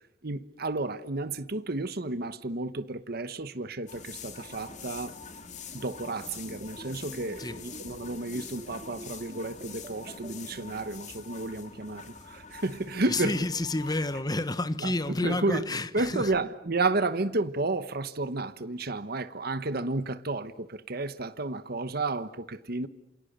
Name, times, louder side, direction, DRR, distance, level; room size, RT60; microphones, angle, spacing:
voice 1, 0.2-5.2 5.7-13.4 14.8-15.6 15.9-22.9, right 2 dB, 60° right, 1.2 m, -32 dB
sound 1, 3.9-14.2, left 5 dB, 40° left, 2.8 m, -45 dB
sound 2, 6.5-10.3, equal, 30° right, 3.1 m, -46 dB
voice 2, 13.0-16.3, left 2 dB, 20° left, 1.1 m, -30 dB
28.0 x 28.0 x 6.7 m
head